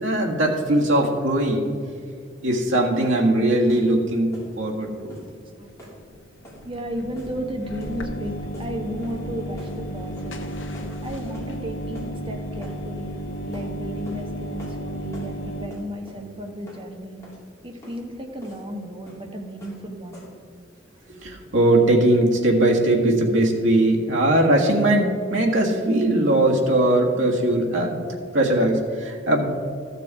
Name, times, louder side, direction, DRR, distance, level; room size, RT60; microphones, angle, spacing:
voice 1, 0.0-1.7 2.4-5.1 21.2-28.0 28.3-29.6, right 1 dB, 85° right, -1 dB, 1.7 m, -20 dB
sound 1, 3.0-3.2 3.7-3.9 4.3-4.5 5.1-5.3 5.8-6.0 6.4-6.6 7.1-7.5 7.8-8.0 8.5-8.7 9.0-9.3 9.6-9.8 10.2-10.3 10.7-10.9 11.3-11.6 11.9-12.1 12.6-12.8 13.5-13.7 14.0-14.3 14.6-14.8 15.1-15.3 15.7-16.2 16.7-16.8 17.2-17.4 17.8-18.0 18.4-18.6 19.1-19.3 19.6-19.8 20.1-20.4, equal, 15° left, 3.1 m, -44 dB
voice 2, 5.3-5.7 6.6-10.4 11.0-13.2 13.4-17.2 17.6-20.2, equal, 30° right, 3 dB, 1.2 m, -34 dB
sound 2, 6.0-15.7, equal, 85° left, 1.1 m, -33 dB
13.5 x 6.7 x 4.8 m, 2.2 s
head